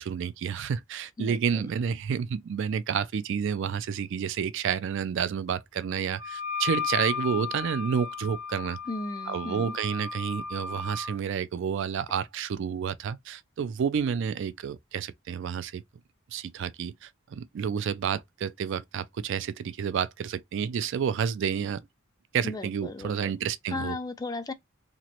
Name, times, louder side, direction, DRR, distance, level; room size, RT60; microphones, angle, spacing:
voice 1, 0.0-8.8 9.3-15.8 16.3-21.8 22.3-24.0, right 7 dB, 60° right, 0.3 m, -30 dB
voice 2, 1.2-1.6 8.9-9.7 22.4-23.3 23.7-24.5, left 3 dB, 20° left, 0.3 m, -36 dB
Wind instrument woodwind instrument, 6.2-11.2, left 6 dB, 20° right, 1.0 m, -34 dB
3.0 x 2.5 x 2.8 m
head